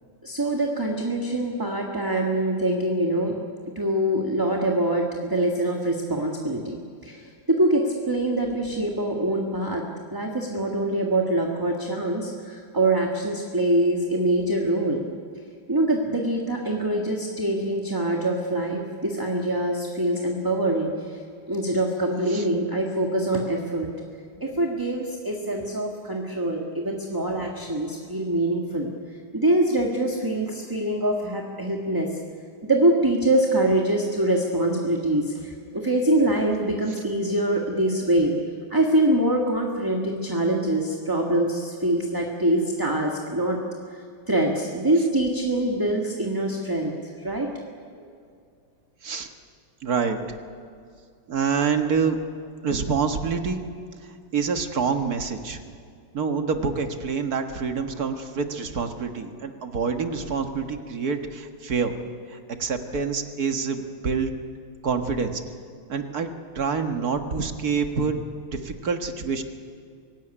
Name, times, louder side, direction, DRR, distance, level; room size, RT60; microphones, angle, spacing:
voice 1, 0.2-3.4 3.7-7.2 7.5-9.8 10.1-15.0 15.7-20.9 21.5-23.9 24.4-28.9 29.3-32.1 32.6-38.3 38.7-43.6 44.3-47.0 47.2-47.5, right 1 dB, 10° right, 0 dB, 1.6 m, -24 dB
voice 2, 49.8-50.4 51.3-52.2 52.6-53.6 54.3-55.6 56.1-61.9 62.3-64.3 64.8-65.4 65.9-66.3 66.6-68.2 68.5-69.4, right 5 dB, 55° right, 5 dB, 2.0 m, -26 dB
25.0 x 17.0 x 10.0 m, 2.2 s
omnidirectional pair, 2.1 m